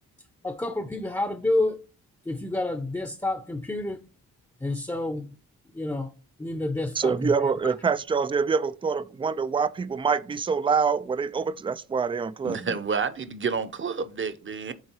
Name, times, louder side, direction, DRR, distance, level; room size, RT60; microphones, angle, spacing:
voice 1, 0.4-1.8 2.3-4.0 4.6-5.3 5.7-6.1 6.4-7.3, left 2 dB, 10° left, 0.7 m, -29 dB
voice 2, 6.9-12.7, right 5 dB, 15° right, 0.3 m, -25 dB
voice 3, 12.4-14.7, right 5 dB, 35° right, 0.8 m, -29 dB
6.6 x 3.8 x 4.5 m
cardioid pair, 70°, 36 cm